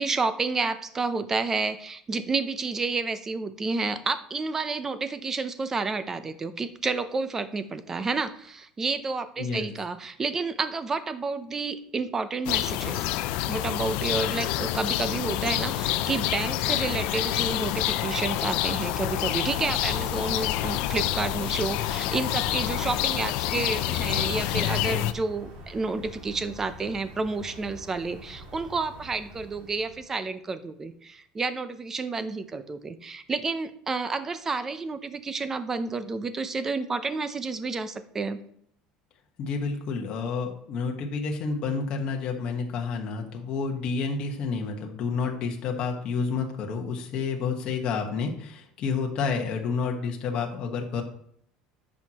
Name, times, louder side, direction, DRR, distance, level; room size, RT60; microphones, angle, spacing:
voice 1, 0.0-13.1 13.5-38.4, right 4 dB, 20° right, 12 dB, 0.6 m, -30 dB
sound 1, 12.5-25.1, left 14 dB, 70° left, 0.4 m, -27 dB
sound 2, 14.7-30.2, right 1 dB, 65° right, 2.4 m, -45 dB
voice 2, 39.4-51.0, left 5 dB, 45° left, 2 dB, 1.3 m, -29 dB
10.5 x 6.3 x 3.0 m, 0.67 s
cardioid pair, 150°, 2 cm